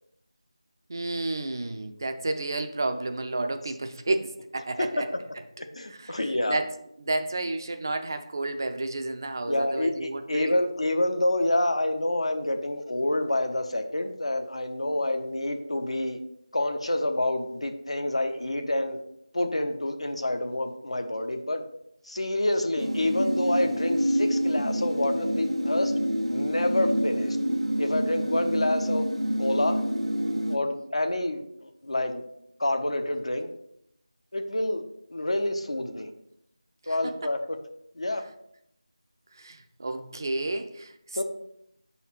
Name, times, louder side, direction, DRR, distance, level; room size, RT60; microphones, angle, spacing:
voice 1, 0.9-5.0 5.9-6.2 6.5-6.7 7.0-10.5 36.9-37.0 39.4-40.9, right 2 dB, 40° right, 7 dB, 0.5 m, -31 dB
voice 2, 5.7-6.6 9.5-16.2 16.5-19.0 19.3-21.6 22.0-25.9 26.3-27.4 27.8-29.1 29.4-29.8 30.5-32.2 32.6-33.5 34.3-34.8 35.1-36.1 36.9-37.4 38.0-38.2 41.1-41.2, left 1 dB, 75° left, 5 dB, 0.8 m, -27 dB
sound 1, 22.8-30.6, equal, 85° right, 1.1 m, -27 dB
4.9 x 4.1 x 5.7 m, 0.76 s
figure-of-eight pair, 170°, 3 cm